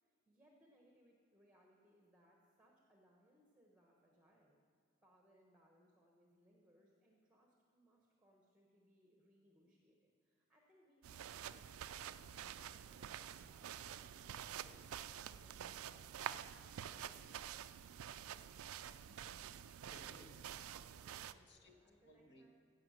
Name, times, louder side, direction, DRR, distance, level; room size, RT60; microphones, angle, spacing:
voice 1, 0.0-4.6 5.0-15.1 15.4-16.3 16.8-17.3 21.1-22.5, equal, 5° right, 0 dB, 1.1 m, -71 dB
sound 1, 11.0-21.3, right 9 dB, 90° right, 0.4 m, -49 dB
voice 2, 18.9-20.5 21.3-21.8 22.0-22.5, equal, 55° left, 3 dB, 1.4 m, -63 dB
15.5 x 5.7 x 7.9 m, 2.1 s
head